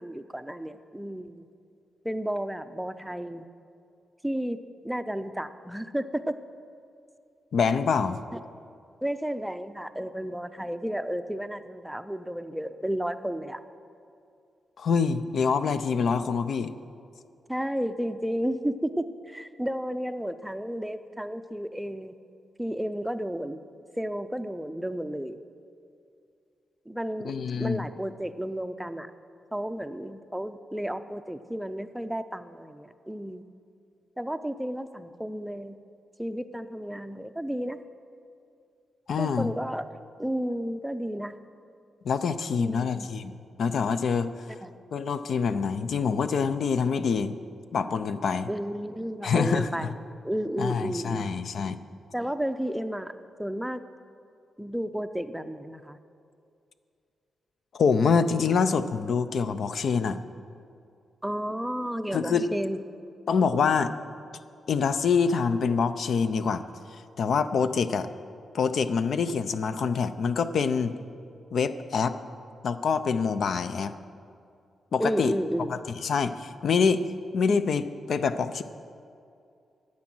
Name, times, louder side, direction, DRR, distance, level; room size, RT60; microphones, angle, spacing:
voice 1, 0.0-1.5 2.0-3.4 4.2-4.6 4.8-6.4 8.3-8.4 9.0-13.6 17.5-22.1 22.6-23.6 24.0-25.4 26.9-27.3 27.6-29.1 29.5-33.4 34.2-35.8 36.2-37.8 39.2-39.9 40.2-41.3 42.6-43.1 44.6-44.7 48.5-50.0 50.2-51.3 52.1-53.1 53.4-53.8 54.6-56.0 61.2-62.8 75.0-75.7, equal, 5° right, 10 dB, 0.5 m, -32 dB
voice 2, 7.5-8.2 14.8-16.7 27.2-27.9 39.1-39.5 42.0-43.3 43.6-44.5 44.9-47.3 47.7-48.5 49.2-49.9 50.6-51.8 57.7-60.2 62.1-62.5 63.3-63.9 64.7-66.6 66.9-68.1 68.5-70.9 71.5-72.2 72.6-73.9 74.9-75.3 75.7-77.1 77.3-78.6, left 5 dB, 65° left, 11 dB, 0.5 m, -25 dB
13.0 x 8.5 x 6.1 m, 2.5 s
cardioid pair, 100°, 0 cm